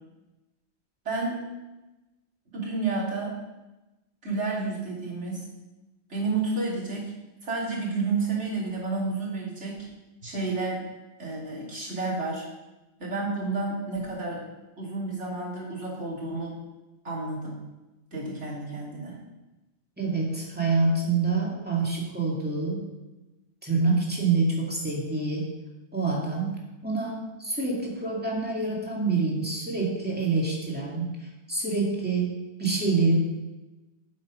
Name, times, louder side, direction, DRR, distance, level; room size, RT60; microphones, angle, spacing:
voice 1, 1.0-1.4 2.5-3.3 4.2-5.4 6.1-7.1 7.4-9.8 10.2-10.8 11.2-12.4 13.0-14.4 14.8-16.6 17.0-17.6 18.1-19.2, right 3 dB, 75° right, -5 dB, 3.1 m, -30 dB
voice 2, 20.0-22.8 23.6-25.5 25.9-26.5 26.8-31.1 31.5-32.3 32.6-33.2, right 3 dB, 10° right, -3 dB, 2.3 m, -26 dB
8.5 x 7.4 x 5.1 m, 1.0 s
omnidirectional pair, 1.2 m